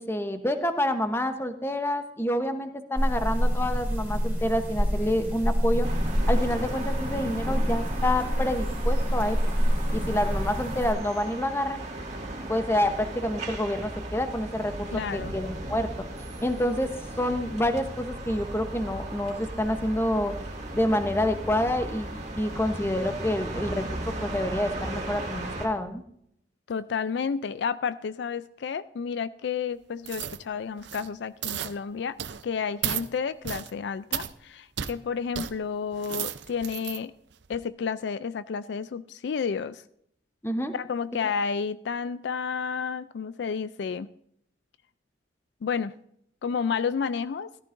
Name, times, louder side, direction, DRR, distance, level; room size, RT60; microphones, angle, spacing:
voice 1, 0.0-5.9 6.3-9.5 9.9-11.8 12.5-16.1 16.4-16.9 17.2-20.3 20.7-26.0 40.4-40.7 41.2-41.3, left 1 dB, 15° left, 8 dB, 0.9 m, -28 dB
sound 1, 2.9-10.9, equal, 10° right, 2.6 m, -27 dB
sound 2, 5.8-25.7, right 1 dB, 40° right, 2.1 m, -36 dB
voice 2, 14.9-15.3 26.7-32.2 32.4-37.1 37.5-39.8 40.7-44.1 45.6-45.9 46.4-47.5, left 6 dB, 65° left, 15 dB, 0.4 m, -31 dB
sound 3, 30.0-30.4 30.8-31.1 31.4-31.7 32.2-32.4 32.8-33.1 33.4-33.7 34.1-34.3 34.8-34.9 35.3-35.5 35.9-37.0 37.4-37.6, right 10 dB, 70° right, 0.6 m, -33 dB
14.5 x 14.0 x 2.6 m, 0.71 s
head